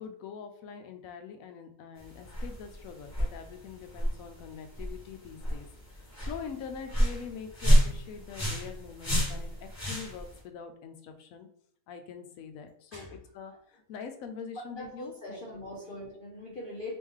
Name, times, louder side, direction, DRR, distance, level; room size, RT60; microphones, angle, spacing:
voice 1, 0.0-5.7 5.9-11.5 11.9-15.5 15.7-16.0, left 6 dB, 75° left, 7 dB, 0.9 m, -44 dB
sound 1, 2.0-10.4, equal, 10° left, 1.1 m, -29 dB
voice 2, 14.5-17.0, left 1 dB, 50° left, -3 dB, 0.7 m, -41 dB
3.1 x 3.0 x 3.6 m, 0.64 s
omnidirectional pair, 1.5 m